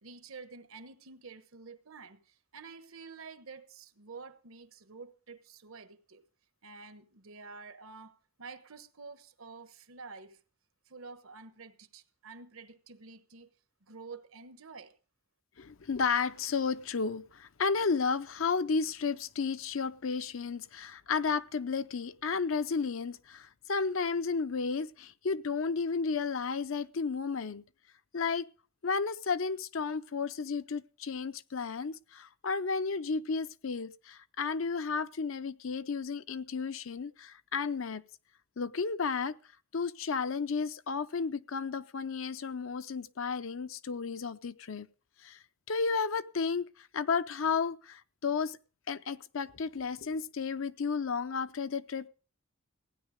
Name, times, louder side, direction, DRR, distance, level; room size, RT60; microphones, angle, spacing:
voice 1, 0.0-6.3 6.6-10.4 10.9-13.5 13.8-15.0, right 4 dB, 85° right, 1.2 m, -49 dB
voice 2, 15.6-27.6 28.1-28.5 28.8-38.0 38.6-39.4 39.7-44.9 45.2-45.4 45.7-48.6 48.9-52.1, left 5 dB, 75° left, 0.6 m, -33 dB
16.0 x 9.7 x 5.1 m
head